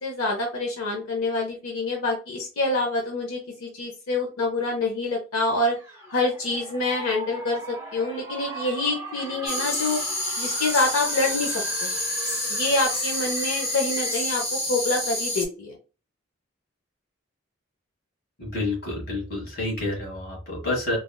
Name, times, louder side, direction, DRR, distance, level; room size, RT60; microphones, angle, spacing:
voice 1, 0.0-5.8 6.1-10.0 10.4-11.9 12.5-15.8, left 2 dB, 80° left, 0 dB, 0.7 m, -26 dB
sound 1, 5.6-14.4, right 2 dB, 15° right, 0.6 m, -39 dB
sound 2, 9.5-15.5, left 1 dB, 30° left, 0.8 m, -28 dB
voice 2, 18.4-21.0, left 2 dB, 45° left, -2 dB, 1.6 m, -29 dB
3.4 x 2.3 x 2.2 m, 0.33 s
head